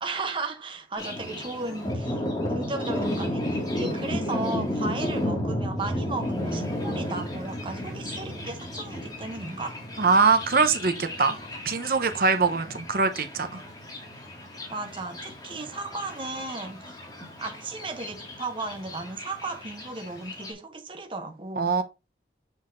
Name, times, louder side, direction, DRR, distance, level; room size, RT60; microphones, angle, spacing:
voice 1, 0.0-2.2 2.5-9.8 14.7-17.0 17.4-21.7, right 3 dB, 30° right, 0.8 m, -35 dB
Thunder, 1.0-20.5, left 1 dB, 25° left, 2.0 m, -33 dB
voice 2, 10.0-11.4 11.6-13.6 21.6-21.8, right 4 dB, 55° right, 0.9 m, -23 dB
7.3 x 6.3 x 2.6 m
head